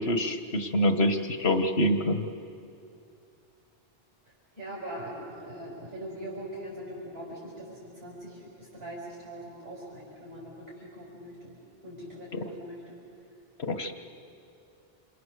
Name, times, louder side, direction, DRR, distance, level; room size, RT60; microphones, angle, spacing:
voice 1, 0.0-2.3 12.3-12.4 13.6-13.9, left 1 dB, 80° left, 7 dB, 1.8 m, -26 dB
voice 2, 4.6-11.5 11.8-13.0, right 1 dB, 70° right, -5 dB, 5.8 m, -41 dB
28.0 x 28.0 x 6.9 m, 2.6 s
omnidirectional pair, 1.1 m